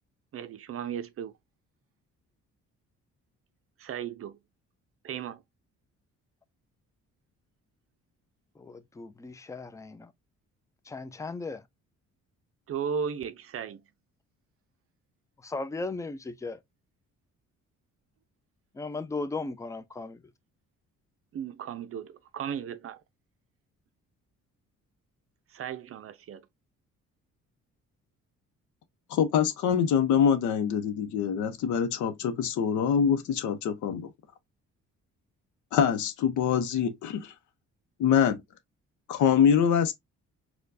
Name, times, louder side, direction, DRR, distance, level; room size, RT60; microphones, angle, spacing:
voice 1, 0.3-1.3 3.8-4.4 5.0-5.4 12.7-13.8 21.3-23.0 25.5-26.5, right 7 dB, 50° right, 0.5 m, -35 dB
voice 2, 8.6-10.1 10.9-11.6 15.4-16.6 18.7-20.2, left 3 dB, 10° left, 0.4 m, -36 dB
voice 3, 29.1-34.1 35.7-37.3 38.0-38.4 39.1-39.9, left 8 dB, 75° left, 0.7 m, -24 dB
4.4 x 2.3 x 2.5 m
cardioid pair, 90°, 30 cm